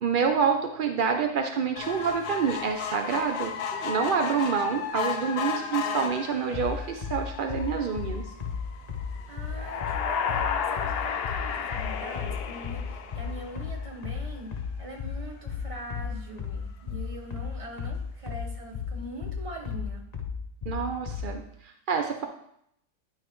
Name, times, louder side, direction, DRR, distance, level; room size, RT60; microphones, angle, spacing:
voice 1, 0.0-8.2 20.7-22.2, right 6 dB, 75° right, 5 dB, 0.4 m, -27 dB
sound 1, 1.8-14.4 14.9-15.0 15.3-15.4 15.7-15.8, left 7 dB, 75° left, 1.3 m, -36 dB
sound 2, 6.5-21.3, left 6 dB, 40° left, 0.6 m, -34 dB
voice 2, 9.3-20.1, right 1 dB, 25° right, 2 dB, 1.0 m, -42 dB
sound 3, 9.5-13.4, left 7 dB, 90° left, 0.5 m, -31 dB
10.0 x 5.5 x 3.1 m, 0.74 s
omnidirectional pair, 1.7 m